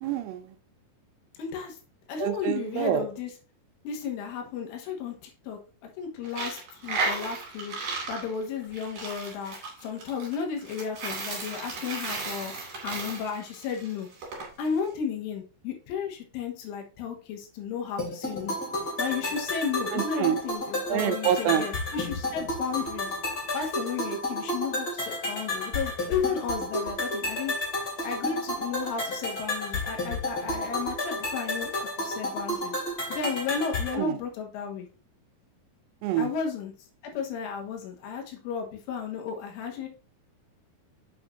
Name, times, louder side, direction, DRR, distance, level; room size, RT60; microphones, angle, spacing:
voice 1, 0.0-0.5 2.2-3.1 19.9-20.4 20.9-21.7 33.9-34.2 36.0-36.3, right 11 dB, 85° right, 10 dB, 3.1 m, -27 dB
voice 2, 1.4-1.8 2.1-3.3 3.9-12.5 12.8-14.1 14.6-18.6 19.0-23.2 23.5-27.5 28.0-32.8 33.1-34.9 36.2-36.7 37.0-39.9, left 6 dB, 80° left, 2 dB, 3.8 m, -33 dB
Coin (dropping), 6.2-14.5, right 3 dB, 45° right, 3.1 m, -35 dB
sound 1, 18.0-34.0, left 1 dB, 30° left, 1.8 m, -31 dB
8.1 x 7.0 x 2.7 m, 0.36 s
omnidirectional pair, 5.7 m